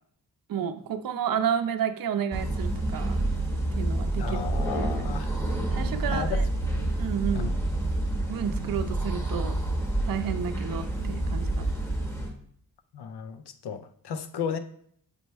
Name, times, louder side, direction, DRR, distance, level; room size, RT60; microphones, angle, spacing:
voice 1, 0.5-3.3 3.7-4.4 4.7-4.9 5.7-6.4 7.0-7.5 8.3-9.5 10.1-11.7, right 8 dB, 60° right, 8 dB, 0.6 m, -31 dB
sound 1, 2.3-12.3, right 2 dB, 5° left, 0.8 m, -28 dB
voice 2, 4.2-5.4 6.1-6.5 6.7-7.0 7.3-7.5 12.9-14.6, left 7 dB, 80° left, 9 dB, 0.6 m, -34 dB
6.9 x 3.2 x 4.5 m, 0.64 s
wide cardioid pair, 160°, 39 cm